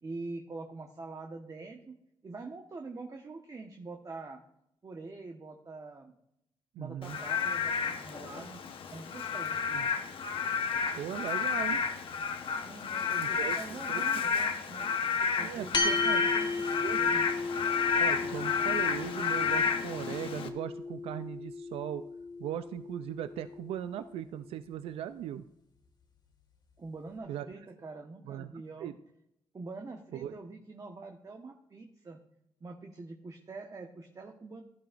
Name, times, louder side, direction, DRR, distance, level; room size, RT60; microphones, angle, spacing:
voice 1, 0.0-1.9 2.2-4.4 4.8-6.1 6.8-8.6 8.9-9.6 12.6-14.9 15.4-17.2 26.8-28.9 29.5-32.2 32.6-34.6, right 3 dB, 40° right, 3 dB, 1.2 m, -45 dB
voice 2, 6.8-7.2 9.7-9.9 11.0-11.8 13.2-14.3 15.4-16.3 16.8-17.1 18.0-22.0 22.4-25.4 27.3-27.5 28.3-28.5 28.8-28.9 30.1-30.3, right 11 dB, 90° right, 11 dB, 0.4 m, -39 dB
Frog / Rain, 7.0-20.5, left 6 dB, 70° left, 1.0 m, -31 dB
sound 1, 15.7-24.4, left 3 dB, 55° left, 1.9 m, -36 dB
16.0 x 11.5 x 2.5 m, 0.80 s
cardioid pair, 75°, 10 cm